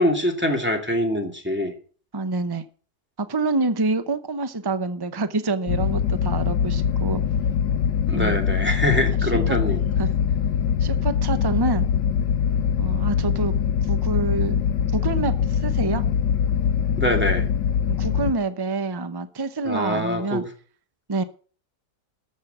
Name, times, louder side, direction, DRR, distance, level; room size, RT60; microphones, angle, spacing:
voice 1, 0.0-1.7 8.1-9.8 17.0-17.5 19.7-20.4, left 1 dB, 5° right, 1 dB, 2.3 m, -24 dB
voice 2, 2.1-2.7 3.2-7.2 8.1-8.4 9.2-9.6 10.0-10.1 10.8-11.9 12.8-13.5 13.9-14.6 14.9-16.0 17.9-20.4 21.1-21.2, right 3 dB, 40° right, 11 dB, 0.3 m, -27 dB
sound 1, 5.7-18.3, left 8 dB, 80° left, 1.5 m, -23 dB
13.5 x 6.5 x 7.9 m, 0.41 s
omnidirectional pair, 1.9 m